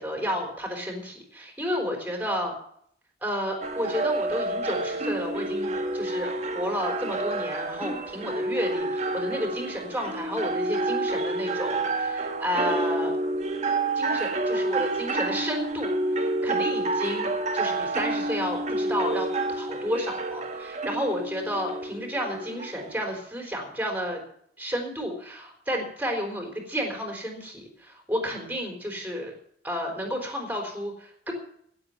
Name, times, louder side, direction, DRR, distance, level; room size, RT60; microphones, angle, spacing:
voice 1, 0.0-2.5 3.2-13.1 14.0-24.2 24.6-29.3 29.6-31.3, equal, 10° right, 2 dB, 3.9 m, -31 dB
sound 1, 3.6-23.2, right 2 dB, 40° right, 1.6 m, -29 dB
17.0 x 7.8 x 6.9 m, 0.65 s
head